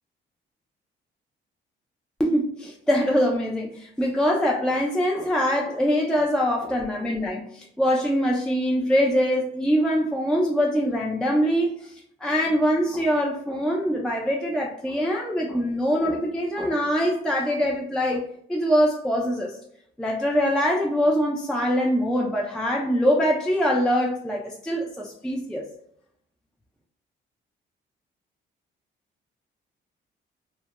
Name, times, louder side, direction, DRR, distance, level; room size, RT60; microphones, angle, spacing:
voice 1, 2.2-18.2 18.5-19.6 20.0-25.7, equal, 5° left, -1 dB, 0.3 m, -23 dB
2.2 x 2.0 x 2.8 m, 0.68 s
cardioid pair, 90°, 20 cm